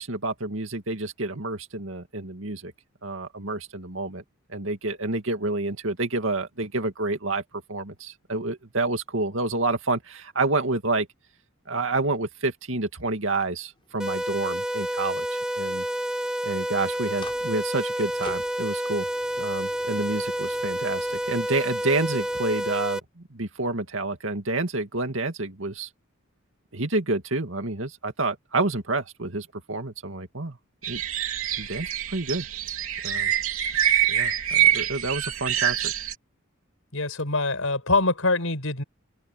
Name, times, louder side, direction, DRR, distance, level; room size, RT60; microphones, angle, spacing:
voice 1, 0.0-2.7 3.0-4.2 4.5-7.4 7.7-11.1 11.7-15.9 16.4-19.1 19.4-25.9 26.7-30.6 30.9-31.0 31.6-32.5 33.0-33.3 34.1-35.9, right 2 dB, 65° right, 2.4 m, -29 dB
sound 1, 12.9-22.6, left 2 dB, 25° left, 5.3 m, -50 dB
sound 2, 14.0-23.0, right 1 dB, 5° right, 0.4 m, -29 dB
sound 3, 30.8-36.1, right 10 dB, 85° right, 3.0 m, -25 dB
voice 2, 36.9-38.8, left 3 dB, 80° left, 5.1 m, -24 dB
open air
head